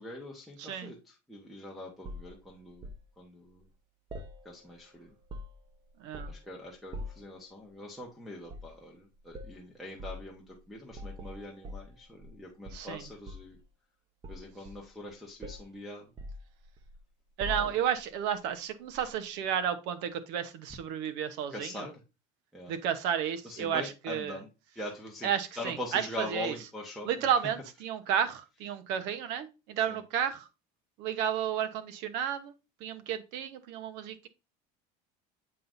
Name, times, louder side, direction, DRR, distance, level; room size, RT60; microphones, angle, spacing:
voice 1, 0.0-2.9 3.2-3.7 4.4-5.1 6.3-13.6 14.3-16.1 17.5-17.8 19.0-19.1 21.5-21.9 22.5-22.7 23.4-24.5 24.7-27.2 29.9-30.0, left 1 dB, ahead, -4 dB, 1.1 m, -43 dB
voice 2, 0.6-0.9 6.0-6.3 12.7-13.0 17.4-21.8 22.7-24.4 25.2-26.5 27.0-30.5 31.0-32.5 32.8-34.3, right 9 dB, 65° right, 10 dB, 1.0 m, -32 dB
sound 1, 2.0-3.0 4.1-4.8 5.1-5.7 6.1-6.5 6.9-7.3 8.4-8.8 9.3-9.6 10.0-10.2 10.9-12.4 12.6-13.6 14.2-15.1 15.4-15.7 16.2-17.0 17.4-18.0 18.9-19.1, left 1 dB, 25° right, 0.8 m, -43 dB
7.6 x 5.5 x 2.6 m, 0.27 s
cardioid pair, 145°, 19 cm